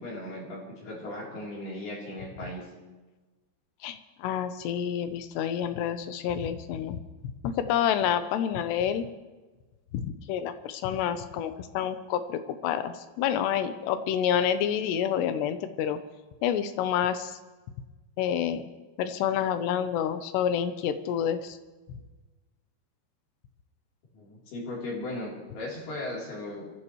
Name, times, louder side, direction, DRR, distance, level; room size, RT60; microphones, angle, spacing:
voice 1, 0.0-2.7 24.1-26.7, left 1 dB, 65° left, -5 dB, 5.6 m, -37 dB
voice 2, 3.8-7.0 7.4-9.1 9.9-16.0 16.4-17.4 18.2-18.6 19.0-21.6, left 9 dB, 85° left, 10 dB, 3.0 m, -28 dB
25.5 x 15.0 x 3.2 m, 1.2 s
omnidirectional pair, 4.8 m